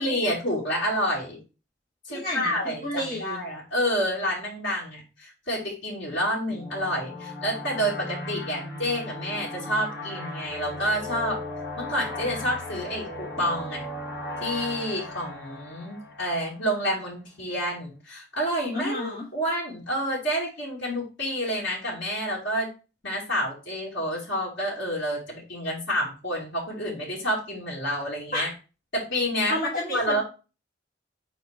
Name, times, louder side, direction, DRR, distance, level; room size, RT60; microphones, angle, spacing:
voice 1, 0.0-1.4 2.1-11.4 11.8-13.9 14.4-22.7 23.0-28.5 28.9-29.6 29.9-30.2, equal, 85° left, -4 dB, 2.5 m, -29 dB
voice 2, 2.1-3.4 18.7-19.2 28.3-28.5 29.5-30.2, left 1 dB, 45° left, -5 dB, 1.5 m, -30 dB
sound 1, 6.5-16.8, left 2 dB, 65° left, 1.5 m, -37 dB
4.4 x 4.4 x 4.8 m, 0.33 s
head